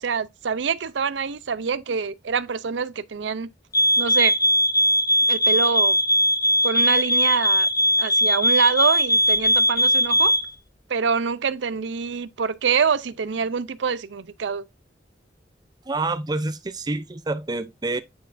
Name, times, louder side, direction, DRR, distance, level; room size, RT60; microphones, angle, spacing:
voice 1, 0.0-3.5 4.0-4.3 5.3-6.0 6.6-7.7 8.0-10.3 10.9-14.6, right 6 dB, 80° right, 0.5 m, -25 dB
sound 1, 3.7-10.5, equal, 20° left, 0.7 m, -19 dB
voice 2, 15.9-18.0, right 2 dB, 20° right, 0.5 m, -27 dB
9.3 x 4.5 x 2.5 m
head